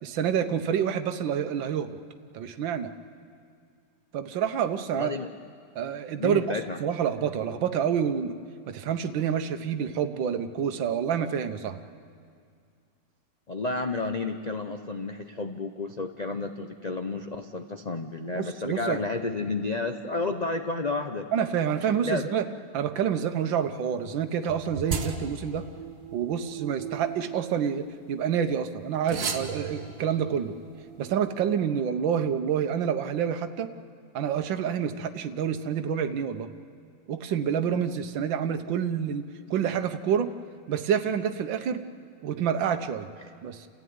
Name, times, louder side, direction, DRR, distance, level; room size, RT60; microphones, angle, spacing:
voice 1, 0.0-1.9 2.3-2.9 4.1-5.1 5.7-6.5 6.8-8.3 8.7-11.8 18.4-19.0 21.3-22.5 22.7-25.6 26.1-30.5 31.0-33.7 34.1-36.5 37.1-40.3 40.7-41.8 42.2-43.1 43.4-43.7, right 8 dB, 85° right, 8 dB, 1.6 m, -28 dB
voice 2, 4.9-5.3 6.2-7.0 13.5-21.3 22.0-22.2 43.2-43.3, left 3 dB, 80° left, 6 dB, 0.3 m, -31 dB
sound 1, 24.4-28.2 29.0-31.3, right 6 dB, 55° right, 1.8 m, -37 dB
29.0 x 14.5 x 9.5 m, 2.3 s
omnidirectional pair, 2.0 m